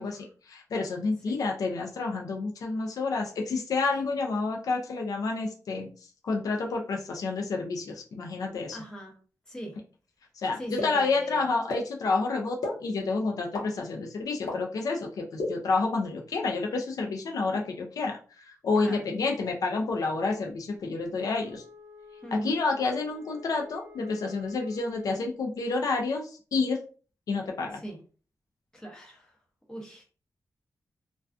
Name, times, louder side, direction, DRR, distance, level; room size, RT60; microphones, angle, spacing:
voice 1, 0.0-5.9 6.2-8.8 10.4-21.6 22.3-26.8 27.3-27.8, left 3 dB, 70° left, 2 dB, 0.4 m, -29 dB
voice 2, 8.7-9.1 9.5-9.7 10.6-11.5 18.8-19.0 22.2-22.6 27.7-28.0 28.7-29.3 29.7-30.0, equal, 10° left, -1 dB, 0.7 m, -39 dB
sound 1, 10.8-10.9 11.7-11.8 12.6-12.7 13.5-13.6 14.5-14.6 15.4-15.5, left 3 dB, 85° left, 0.8 m, -29 dB
Wind instrument woodwind instrument, 21.1-25.3, left 5 dB, 60° right, 0.6 m, -51 dB
2.3 x 2.2 x 2.4 m, 0.38 s
wide cardioid pair, 150°, 6 cm